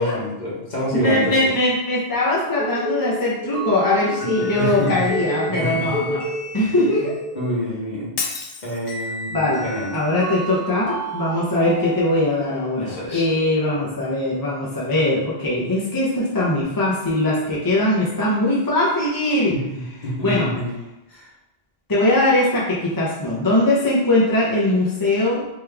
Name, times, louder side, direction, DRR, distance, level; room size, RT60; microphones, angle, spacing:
voice 1, 0.0-1.4 4.4-5.0 5.5-5.9 7.0-7.1 7.3-8.1 8.6-10.0 12.8-13.3 19.5-20.8 21.1-21.3, equal, 45° left, -6 dB, 1.4 m, -27 dB
voice 2, 0.9-7.2 9.3-9.6 9.9-19.6 20.2-20.5 21.9-25.5, left 1 dB, 20° left, -7 dB, 0.8 m, -21 dB
sound 1, 2.6-7.4, left 1 dB, 75° right, 0.9 m, -29 dB
sound 2, 3.5-7.3 8.9-12.6, right 2 dB, 90° left, 1.8 m, -33 dB
Shatter, 8.2-9.2, left 5 dB, 75° left, 0.8 m, -30 dB
3.6 x 3.1 x 3.4 m, 0.94 s
omnidirectional pair, 1.0 m